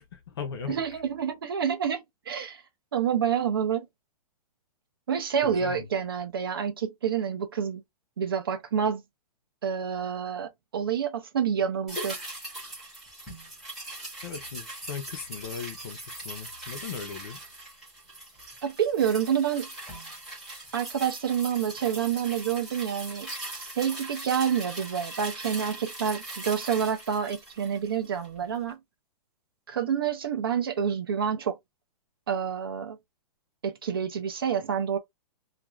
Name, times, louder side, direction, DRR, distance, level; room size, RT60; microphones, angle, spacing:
voice 1, 0.0-1.0 5.4-5.9 14.2-17.4, left 6 dB, 35° left, 0.6 m, -38 dB
voice 2, 0.7-2.6 2.9-3.9 5.1-7.8 8.2-9.0 9.6-12.2 18.6-19.7 20.7-23.3 23.7-28.8 29.7-31.6 32.3-33.0 33.6-35.0, right 8 dB, 35° right, 0.4 m, -28 dB
sound 1, 11.9-28.4 28.7-28.8, right 2 dB, ahead, 0.8 m, -40 dB
2.4 x 2.3 x 3.0 m
hypercardioid pair, 180°, 20 cm